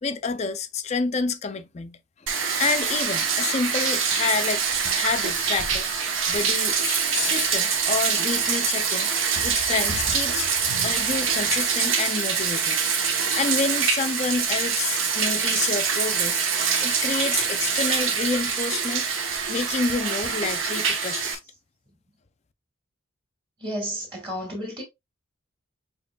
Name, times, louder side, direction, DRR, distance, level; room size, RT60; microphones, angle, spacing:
voice 1, 0.0-2.0 2.6-4.6 4.9-5.9 6.3-9.1 9.4-10.5 10.8-12.8 13.3-16.4 16.8-19.0 19.5-21.4, left 4 dB, 30° left, 0.4 m, -28 dB
Bathtub (filling or washing), 2.3-21.4, right 6 dB, 70° right, 0.9 m, -25 dB
voice 2, 23.6-24.8, equal, 25° right, 2.0 m, -32 dB
6.7 x 3.0 x 2.2 m
head